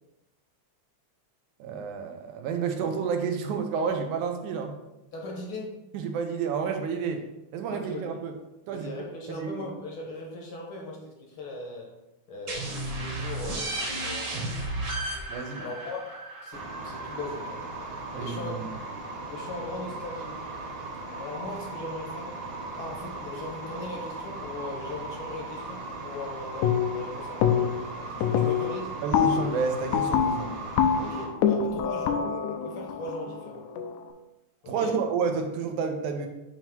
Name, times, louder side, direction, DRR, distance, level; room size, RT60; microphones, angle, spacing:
voice 1, 1.6-4.7 5.9-7.2 7.5-8.3 8.7-9.7 15.3-15.6 18.1-18.7 29.0-30.5 34.7-36.3, right 5 dB, 90° right, 4 dB, 2.2 m, -30 dB
voice 2, 5.1-5.8 7.7-8.1 8.7-11.9 12.3-14.4 15.5-16.1 16.4-17.6 18.2-18.6 19.3-20.4 21.2-22.3 22.8-27.8 28.2-29.0 31.0-33.6 34.6-34.9, left 2 dB, 60° left, -1 dB, 1.4 m, -39 dB
sound 1, 12.5-17.9, right 2 dB, 50° right, 1.4 m, -34 dB
sound 2, 16.5-31.3, right 2 dB, 75° right, 3.4 m, -38 dB
sound 3, 26.6-27.1 27.4-27.9 28.2-34.0, left 8 dB, 85° left, 2.0 m, -26 dB
7.4 x 2.9 x 4.5 m, 0.94 s
omnidirectional pair, 3.4 m